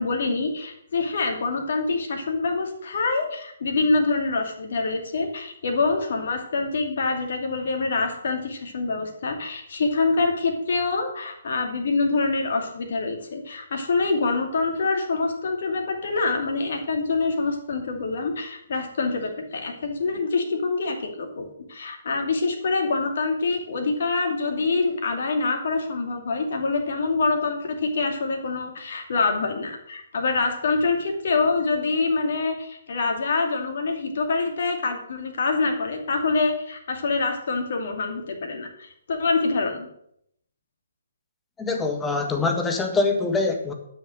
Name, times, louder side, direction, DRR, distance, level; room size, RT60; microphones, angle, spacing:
voice 1, 0.0-21.4 21.7-39.9, left 3 dB, 50° left, 3 dB, 2.5 m, -25 dB
voice 2, 41.6-43.7, left 3 dB, 10° left, 4 dB, 1.5 m, -24 dB
12.0 x 6.6 x 6.5 m, 0.73 s
figure-of-eight pair, 130°, 0 cm